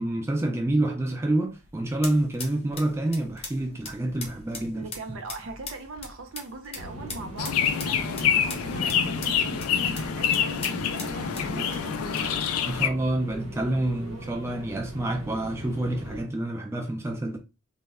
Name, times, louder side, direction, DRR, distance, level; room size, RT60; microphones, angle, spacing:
voice 1, 0.0-5.2 12.6-17.4, right 1 dB, 10° right, 0.3 m, -28 dB
sound 1, 1.3-12.9, left 3 dB, 30° left, 0.6 m, -43 dB
voice 2, 4.8-12.4, right 2 dB, 65° right, 0.6 m, -40 dB
sound 2, 6.7-16.2, equal, 90° right, 1.0 m, -40 dB
sound 3, 7.4-12.9, left 8 dB, 85° left, 0.4 m, -26 dB
2.1 x 2.0 x 3.5 m
head